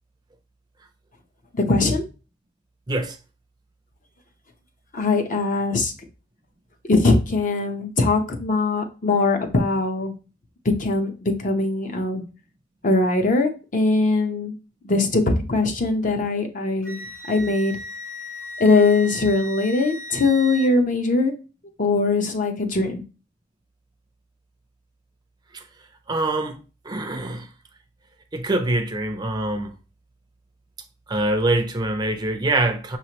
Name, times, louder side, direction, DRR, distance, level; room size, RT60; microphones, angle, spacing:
voice 1, 1.5-2.0 4.9-5.9 6.9-10.1 10.6-12.2 12.8-14.6 14.8-17.0 17.3-17.7 18.6-21.3 21.8-23.0, left 3 dB, 45° left, 0.7 m, -21 dB
Wind instrument woodwind instrument, 16.8-20.7, left 1 dB, 80° left, 1.4 m, -36 dB
voice 2, 26.1-26.6 26.9-27.5 28.3-29.7 31.1-33.0, right 2 dB, 20° right, 0.5 m, -24 dB
5.8 x 3.0 x 2.9 m
head